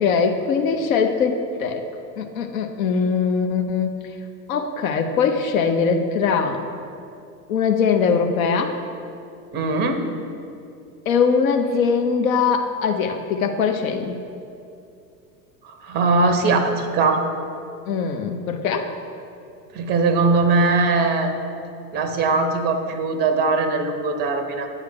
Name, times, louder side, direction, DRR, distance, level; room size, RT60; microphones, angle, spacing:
voice 1, 0.0-1.8 2.2-4.0 4.5-6.6 7.5-8.8 11.1-14.2 17.9-18.9, left 5 dB, 55° left, 5 dB, 0.7 m, -21 dB
voice 2, 9.5-10.0 15.6-17.2 19.7-21.3 21.9-24.7, right 3 dB, 20° right, 7 dB, 0.5 m, -20 dB
8.6 x 3.3 x 6.4 m, 2.6 s
figure-of-eight pair, 80°, 49 cm